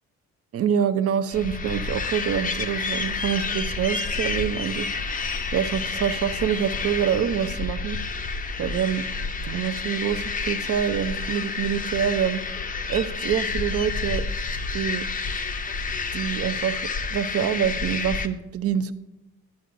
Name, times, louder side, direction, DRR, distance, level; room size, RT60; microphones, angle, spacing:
voice 1, 0.5-4.9 5.5-8.0 8.6-9.0 9.4-12.4 12.9-14.2 14.7-15.0 16.1-18.9, right 8 dB, 50° right, 12 dB, 0.5 m, -26 dB
sound 1, 1.3-18.3, left 4 dB, 25° left, 0.5 m, -29 dB
9.4 x 9.1 x 2.5 m, 0.96 s
cardioid pair, 90°, 30 cm